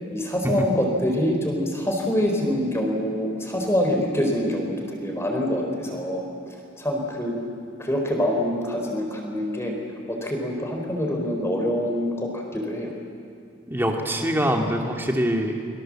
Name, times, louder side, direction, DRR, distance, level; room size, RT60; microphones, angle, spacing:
voice 1, 0.1-7.4 7.8-9.7 10.1-12.9, equal, 15° left, 1 dB, 4.2 m, -25 dB
voice 2, 13.7-15.6, equal, 10° right, 1 dB, 2.4 m, -24 dB
29.5 x 23.5 x 7.7 m, 2.5 s
head